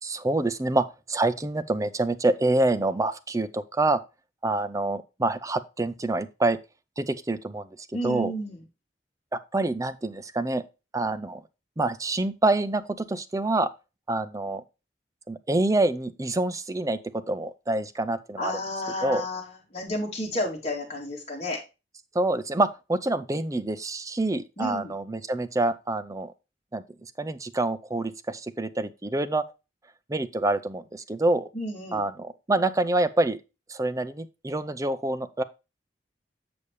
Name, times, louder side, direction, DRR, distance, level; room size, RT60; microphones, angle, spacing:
voice 1, 0.0-4.0 4.4-6.6 7.0-7.7 8.0-8.3 9.5-10.6 10.9-11.4 11.8-13.7 14.1-14.6 15.3-18.6 19.0-19.2 22.1-26.3 26.7-26.8 27.2-29.4 30.1-31.5 31.9-33.4 33.7-35.4, right 2 dB, 20° right, 0.5 m, -26 dB
voice 2, 7.9-8.6 18.4-21.6 24.6-24.9 31.5-32.1, left 1 dB, 40° left, 2.9 m, -31 dB
7.0 x 6.8 x 3.2 m
head